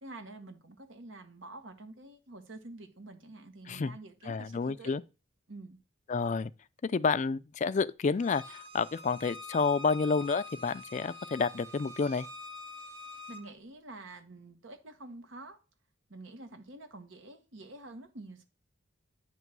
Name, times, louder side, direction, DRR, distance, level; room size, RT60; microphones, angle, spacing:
voice 1, 0.0-4.9 5.5-5.8 13.3-15.6 16.1-18.4, right 2 dB, 80° right, 1.2 m, -48 dB
voice 2, 4.3-5.0 6.1-6.5 6.8-12.3, left 4 dB, 40° left, 0.4 m, -30 dB
Bowed string instrument, 8.2-13.4, left 2 dB, 60° right, 1.4 m, -46 dB
9.2 x 3.1 x 6.0 m
head